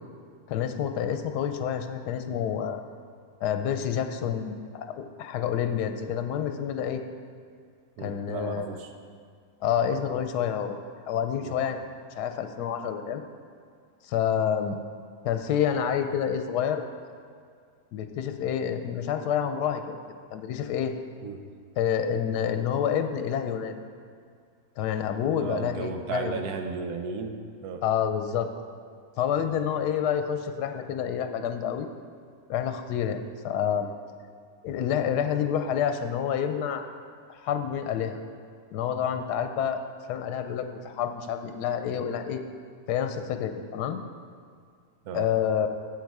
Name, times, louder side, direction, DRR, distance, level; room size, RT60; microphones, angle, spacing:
voice 1, 0.5-2.8 3.4-7.0 8.0-8.8 9.6-10.8 11.1-11.8 12.1-13.2 14.0-14.8 15.2-16.8 17.9-20.0 20.3-20.9 21.8-23.8 24.8-26.4 27.8-28.5 29.2-31.9 32.5-33.9 34.6-36.8 37.3-38.2 38.7-39.8 40.1-42.4 42.9-44.0 45.1-45.7, left 8 dB, 90° left, 8 dB, 1.2 m, -28 dB
voice 2, 8.0-8.9 11.4-11.6 21.2-21.4 25.4-27.8 45.1-45.3, right 5 dB, 75° right, 5 dB, 1.3 m, -34 dB
9.5 x 7.6 x 4.7 m, 2.2 s
omnidirectional pair, 1.7 m